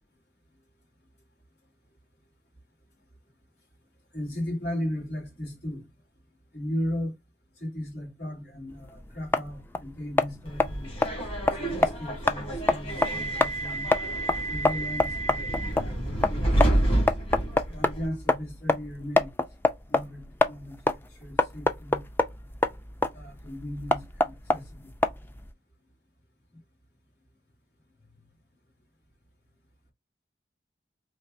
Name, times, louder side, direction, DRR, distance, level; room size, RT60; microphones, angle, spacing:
voice 1, 4.1-5.9 6.5-7.1 7.6-10.9 11.7-13.9 14.5-16.8 17.7-19.3 19.9-20.9 21.2-22.0 23.1-24.9, left 1 dB, 70° left, 2.9 m, -36 dB
sound 1, 8.7-25.5, left 2 dB, 10° left, 0.3 m, -27 dB
Subway metro underground, 10.5-18.1, right 1 dB, 30° left, 2.0 m, -29 dB
4.6 x 3.0 x 2.6 m
head